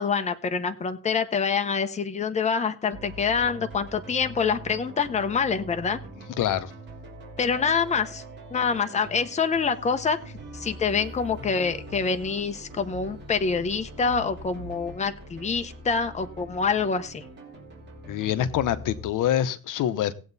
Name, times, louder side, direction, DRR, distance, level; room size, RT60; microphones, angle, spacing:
voice 1, 0.0-6.0 7.4-8.2 8.5-10.2 10.5-17.2, left 5 dB, 20° left, 8 dB, 0.9 m, -26 dB
sound 1, 2.9-19.0, right 1 dB, 30° right, 4.1 m, -42 dB
voice 2, 6.4-6.7 18.1-20.1, left 11 dB, 70° left, 13 dB, 0.9 m, -25 dB
18.0 x 8.1 x 4.1 m, 0.38 s
cardioid pair, 160°, 33 cm